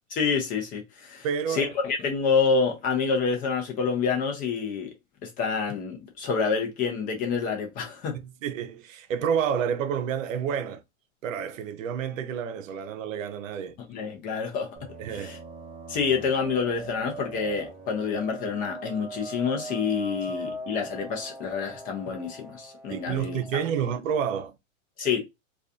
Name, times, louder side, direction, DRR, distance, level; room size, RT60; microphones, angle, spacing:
voice 1, 0.1-4.9 5.2-8.2 13.9-14.8 15.1-15.4 15.9-23.9 25.0-25.2, left 5 dB, 20° left, 0.5 m, -28 dB
voice 2, 1.2-1.7 8.1-10.8 11.2-13.8 15.0-15.4 20.4-20.5 22.9-24.5, right 8 dB, 75° right, 0.6 m, -29 dB
sound 1, 14.8-24.0, right 2 dB, 10° right, 0.9 m, -40 dB
2.6 x 2.4 x 2.3 m
supercardioid pair, 140°, 39 cm